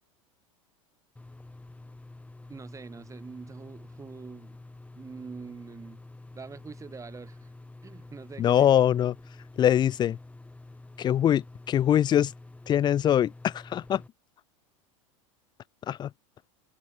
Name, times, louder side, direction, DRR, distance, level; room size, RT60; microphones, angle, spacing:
sound 1, 1.1-14.1, left 2 dB, 10° left, 3.6 m, -48 dB
voice 1, 2.5-4.6 4.9-6.0 6.3-7.5 7.8-8.7, right 5 dB, 20° right, 4.6 m, -44 dB
voice 2, 8.4-9.2 9.6-10.2 11.0-12.3 12.7-14.0 15.9-16.1, left 10 dB, 25° left, 0.4 m, -23 dB
open air
hypercardioid pair, 100°, 17 cm